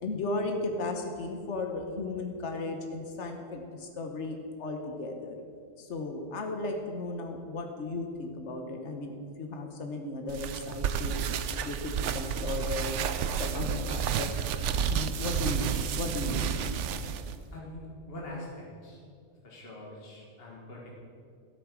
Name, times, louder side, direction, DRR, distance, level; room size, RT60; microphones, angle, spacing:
voice 1, 0.0-5.4 5.8-11.2 11.6-13.0 13.3-14.3 14.9-16.6, left 2 dB, 70° left, 3 dB, 1.4 m, -35 dB
sound 1, 10.3-17.4, right 8 dB, 85° right, 0.9 m, -31 dB
voice 2, 17.5-19.0 19.4-20.9, left 1 dB, 55° left, -3 dB, 2.1 m, -43 dB
13.5 x 8.8 x 6.2 m, 2.3 s
omnidirectional pair, 1.2 m